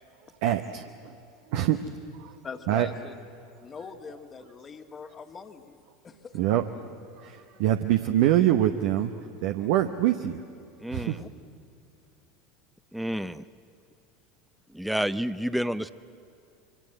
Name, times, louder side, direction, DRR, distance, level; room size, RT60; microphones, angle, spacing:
voice 1, 0.4-1.2 1.5-1.8 2.2-2.4 2.7-2.9 6.3-6.9 7.1-10.4 10.9-11.2, right 12 dB, 60° right, 7 dB, 0.9 m, -25 dB
voice 2, 2.4-3.1 3.6-6.4 9.6-9.7 10.9-11.3, left 5 dB, 30° left, 7 dB, 1.7 m, -42 dB
voice 3, 10.8-11.2 12.9-13.4 14.7-15.9, equal, ahead, 14 dB, 0.6 m, -29 dB
26.0 x 24.0 x 7.8 m, 2.6 s
figure-of-eight pair, 80°, 0 cm